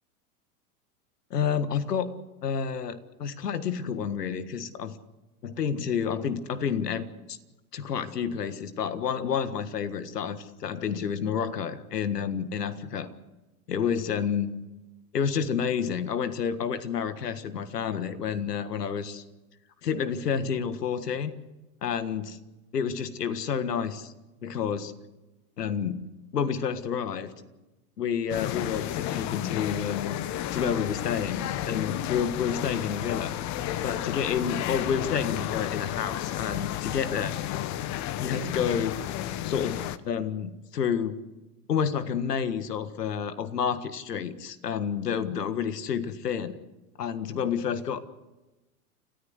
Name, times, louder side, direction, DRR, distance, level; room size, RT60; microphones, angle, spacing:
voice 1, 1.3-2.1 2.4-5.0 5.4-7.4 7.7-13.1 13.7-14.5 15.1-19.2 19.8-21.3 21.8-22.4 22.7-24.1 24.4-24.9 25.6-26.1 26.3-27.3 28.0-30.2 30.5-33.3 33.8-37.4 38.2-39.0 39.4-41.2 41.7-46.6 47.0-48.0, left 7 dB, 80° left, 12 dB, 1.7 m, -29 dB
sound 1, 28.3-40.0, left 12 dB, 35° left, 1.1 m, -32 dB
29.5 x 14.5 x 8.1 m, 1.1 s
hypercardioid pair, 95°, 47 cm